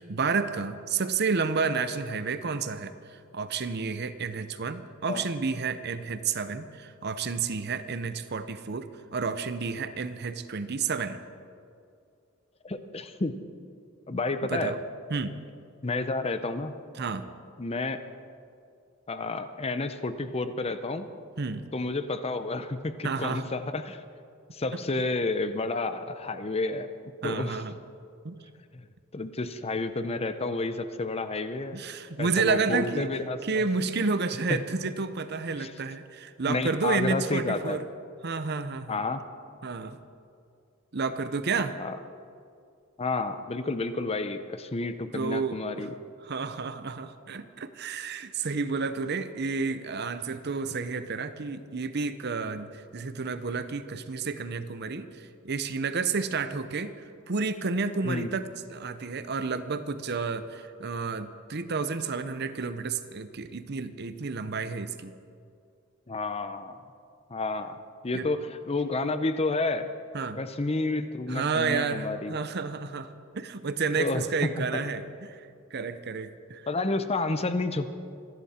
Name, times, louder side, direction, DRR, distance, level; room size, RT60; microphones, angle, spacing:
voice 1, 0.0-11.2 14.5-14.8 15.1-15.4 17.0-17.3 21.4-21.7 23.0-23.4 27.2-27.8 28.2-28.4 31.7-33.1 33.4-37.8 38.2-39.0 39.6-40.0 40.9-41.8 45.1-45.9 46.2-65.1 68.1-68.3 70.1-70.4 71.3-76.7, right 4 dB, 50° right, 11 dB, 0.7 m, -31 dB
voice 2, 12.6-13.3 14.1-14.7 15.8-16.7 17.6-18.0 19.1-21.1 21.7-24.0 24.5-26.9 27.2-27.6 28.7-28.9 29.1-31.8 32.2-33.7 34.5-34.6 35.6-35.7 36.5-37.8 38.9-39.2 41.8-42.0 43.0-45.9 58.0-58.3 66.1-66.8 67.3-67.8 68.0-69.9 70.4-72.4 74.0-74.8 76.7-77.9, left 3 dB, 30° left, 10 dB, 0.7 m, -30 dB
25.5 x 11.0 x 4.3 m, 2.4 s
head